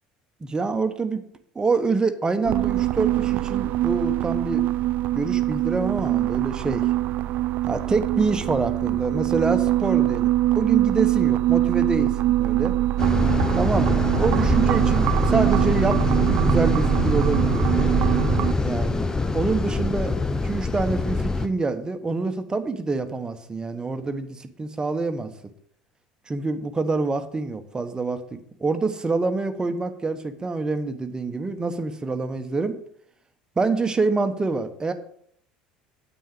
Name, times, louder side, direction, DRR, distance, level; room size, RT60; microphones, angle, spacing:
voice 1, 0.4-1.2 1.5-4.6 5.1-6.9 7.7-12.7 13.5-17.7 18.6-19.1 19.3-25.3 26.3-32.8 33.6-34.9, right 3 dB, 20° right, 8 dB, 1.3 m, -26 dB
sound 1, 2.4-18.5, right 15 dB, 50° right, 0.3 m, -23 dB
sound 2, 13.0-21.5, left 3 dB, 15° left, 0.8 m, -24 dB
9.3 x 8.4 x 5.0 m, 0.64 s
figure-of-eight pair, 65°, 4 cm